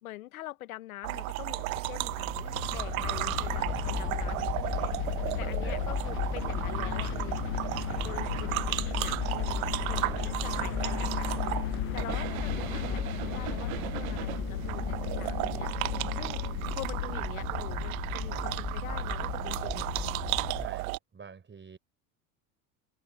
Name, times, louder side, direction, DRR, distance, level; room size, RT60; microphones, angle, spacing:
voice 1, 0.0-7.4 8.0-16.4 16.7-19.9, left 16 dB, 85° left, 1.6 m, -45 dB
sound 1, 1.0-21.0, right 21 dB, 80° right, 0.6 m, -34 dB
sound 2, 1.3-20.7, left 14 dB, 35° left, 0.4 m, -35 dB
sound 3, 6.5-16.5, left 22 dB, 65° left, 1.7 m, -43 dB
voice 2, 9.9-10.4 20.6-21.8, right 5 dB, 25° right, 5.6 m, -47 dB
hypercardioid pair, 80°, 41 cm